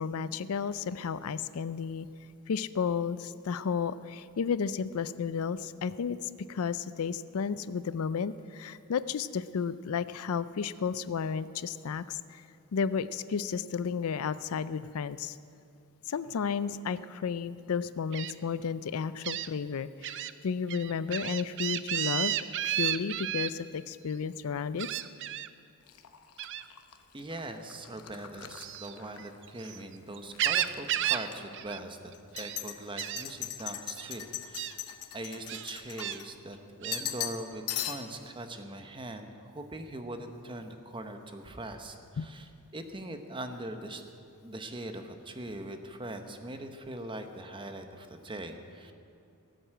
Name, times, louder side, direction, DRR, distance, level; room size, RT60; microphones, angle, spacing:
voice 1, 0.0-2.1 2.5-6.2 6.5-12.4 12.7-15.4 16.1-22.4 22.6-24.9 42.2-42.3, left 6 dB, 70° left, 15 dB, 0.4 m, -32 dB
Gull seagull, 18.1-18.3 19.2-19.5 20.0-20.3 20.7-23.5 24.8-25.5 26.4-26.7 28.5-29.8 30.1-31.3 31.5-31.8 32.1-32.6 33.0-33.2 34.0-34.1 34.5-34.7 35.5-36.2 36.8-37.0, right 12 dB, 55° right, 0.5 m, -32 dB
sound 1, 25.9-29.8 30.1-30.8 31.3-31.4 32.1-36.6 36.9-37.4 37.7-38.3, left 11 dB, 90° left, 0.9 m, -40 dB
voice 2, 27.1-34.7 35.1-44.0 44.4-48.9, right 1 dB, 20° right, 6 dB, 0.9 m, -41 dB
18.0 x 7.9 x 7.7 m, 2.5 s
head